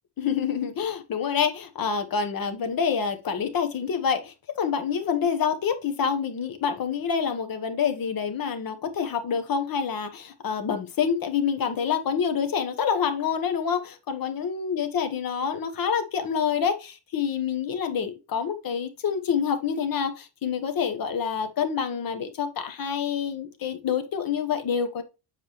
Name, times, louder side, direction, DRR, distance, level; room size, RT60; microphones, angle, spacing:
voice 1, 0.2-25.0, left 7 dB, 50° left, 1.1 m, -27 dB
7.6 x 4.6 x 3.0 m
cardioid pair, 170°, 46 cm